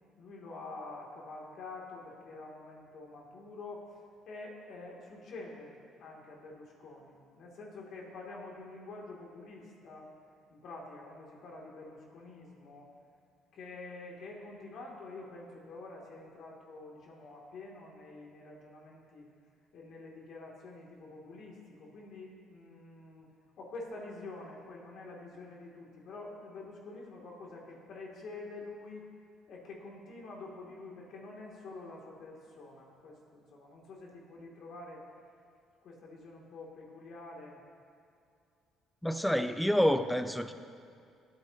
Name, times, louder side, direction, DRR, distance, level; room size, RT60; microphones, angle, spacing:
voice 1, 0.2-10.1 10.5-12.9 13.5-19.3 19.7-23.3 23.6-29.1 29.5-35.0 35.8-37.6, left 3 dB, 65° left, -2 dB, 2.7 m, -47 dB
voice 2, 39.0-40.5, equal, 5° left, 10 dB, 0.7 m, -28 dB
20.5 x 9.4 x 2.9 m, 2.4 s
supercardioid pair, 75°, 0 cm